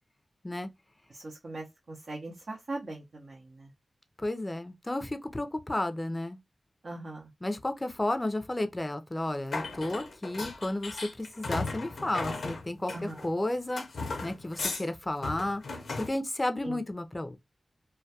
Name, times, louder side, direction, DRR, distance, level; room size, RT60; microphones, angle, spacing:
voice 1, 1.1-3.4 6.8-7.2 12.9-13.1 16.6-16.7, right 2 dB, 70° right, 0.6 m, -40 dB
voice 2, 4.2-6.4 7.4-13.8 14.2-15.6 16.0-17.4, left 1 dB, 25° left, 0.4 m, -32 dB
sound 1, 9.5-13.3 13.8-14.8 15.2-16.1, left 3 dB, 90° left, 0.5 m, -36 dB
2.2 x 2.2 x 2.6 m
cardioid pair, 50°, 0 cm